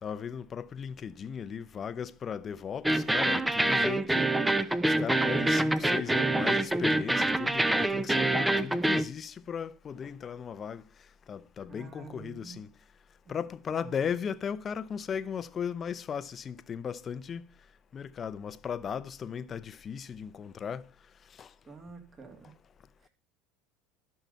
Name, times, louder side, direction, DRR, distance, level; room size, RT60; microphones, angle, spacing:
voice 1, 0.0-4.3 4.9-10.8 11.3-12.7 13.3-17.5 17.9-20.8 21.4-21.5, left 7 dB, 35° left, 0.6 m, -36 dB
sound 1, 2.8-9.0, right 1 dB, 5° right, 0.7 m, -26 dB
voice 2, 11.7-12.6 13.2-13.4 13.7-14.1 21.6-22.6 23.0-23.1, right 4 dB, 30° right, 2.6 m, -48 dB
12.0 x 5.7 x 5.4 m
hypercardioid pair, 95°, 0 cm